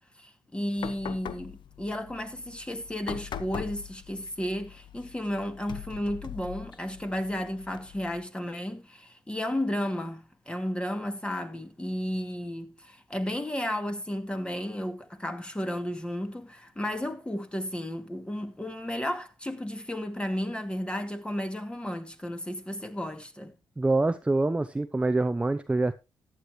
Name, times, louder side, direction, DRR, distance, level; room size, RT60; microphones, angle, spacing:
voice 1, 0.2-23.5, left 1 dB, 10° left, 2.5 m, -33 dB
sound 1, 0.8-8.2, left 9 dB, 65° left, 0.9 m, -42 dB
voice 2, 23.8-25.9, right 2 dB, 15° right, 0.7 m, -25 dB
14.5 x 10.0 x 3.1 m
supercardioid pair, 70°, 9 cm